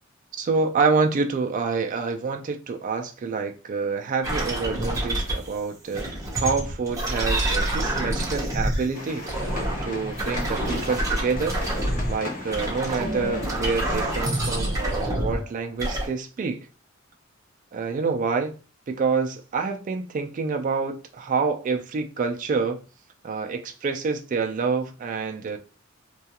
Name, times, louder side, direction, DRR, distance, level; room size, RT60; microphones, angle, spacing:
voice 1, 0.4-6.0 6.4-9.3 9.8-11.5 12.1-16.7 17.7-18.5 18.9-22.8 23.2-25.6, right 4 dB, 40° right, 0.3 m, -27 dB
sound 1, 4.2-5.5 5.9-8.9 9.2-12.1 12.5-15.4 15.8-16.1, right 1 dB, 15° right, 0.7 m, -27 dB
sound 2, 8.9-14.3, left 2 dB, 45° left, 0.6 m, -37 dB
2.3 x 2.3 x 2.8 m
head